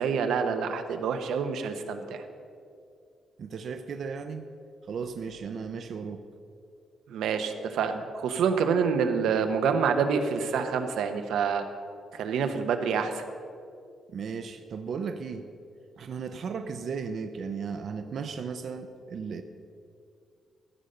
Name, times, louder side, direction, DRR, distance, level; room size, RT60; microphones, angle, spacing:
voice 1, 0.0-2.2 7.1-11.7 12.1-13.2, right 6 dB, 85° right, 7 dB, 0.8 m, -27 dB
voice 2, 3.4-4.5 4.9-6.2 14.1-15.5 16.0-19.4, right 5 dB, 50° right, 7 dB, 0.5 m, -35 dB
14.0 x 5.2 x 6.7 m, 2.4 s
wide cardioid pair, 170°, 0 cm